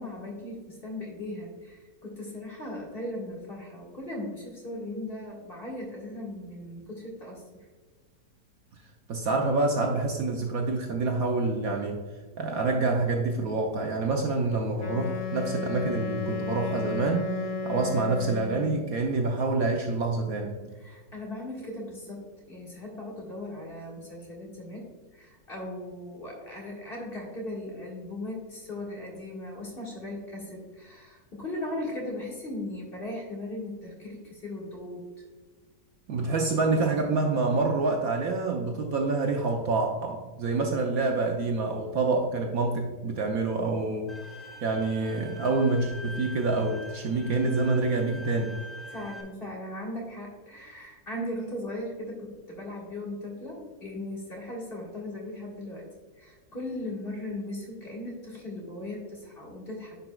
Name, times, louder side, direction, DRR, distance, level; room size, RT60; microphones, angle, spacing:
voice 1, 0.0-7.7 20.8-35.2 48.9-55.9 56.2-60.0, left 1 dB, 35° left, -3 dB, 1.8 m, -38 dB
voice 2, 9.1-12.0 12.4-20.7 36.1-48.6, right 3 dB, 65° right, 1 dB, 1.0 m, -27 dB
Wind instrument woodwind instrument, 14.8-18.9, left 4 dB, 90° left, 0.4 m, -33 dB
Bowed string instrument, 44.1-49.2, left 1 dB, ahead, 0.8 m, -44 dB
10.0 x 5.5 x 2.3 m, 1.4 s
omnidirectional pair, 1.9 m